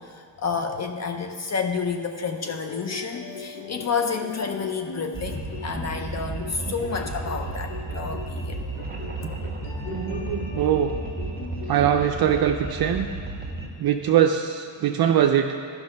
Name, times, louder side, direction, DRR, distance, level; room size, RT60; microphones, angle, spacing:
voice 1, 0.0-8.6, left 5 dB, 35° left, 5 dB, 0.6 m, -30 dB
sound 1, 2.3-11.9, left 5 dB, 70° left, 1.0 m, -40 dB
sound 2, 5.1-13.7, right 2 dB, 20° right, 1.3 m, -33 dB
voice 2, 9.9-10.9 11.7-13.1 13.8-15.5, right 9 dB, 55° right, 4 dB, 0.5 m, -22 dB
12.0 x 5.8 x 5.3 m, 2.5 s
cardioid pair, 120°, 46 cm